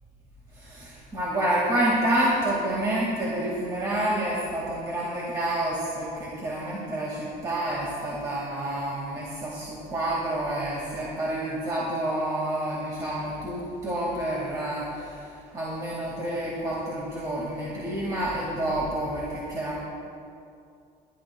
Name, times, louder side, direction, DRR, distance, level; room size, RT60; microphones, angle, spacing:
voice 1, 0.5-19.8, right 1 dB, 25° right, -5 dB, 1.9 m, -28 dB
25.0 x 11.5 x 2.2 m, 2.5 s
cardioid pair, 175°, 15 cm